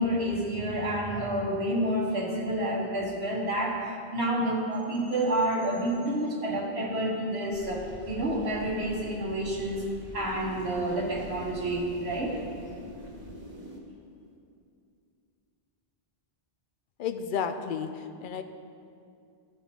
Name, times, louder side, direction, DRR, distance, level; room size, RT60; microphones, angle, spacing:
voice 1, 0.0-3.8 4.1-12.4, right 1 dB, 90° right, -2 dB, 1.7 m, -29 dB
sound 1, 7.5-13.8, right 1 dB, 75° right, 1.8 m, -44 dB
voice 2, 17.0-18.4, left 7 dB, 60° left, 8 dB, 0.7 m, -32 dB
15.5 x 5.4 x 3.7 m, 2.5 s
omnidirectional pair, 1.1 m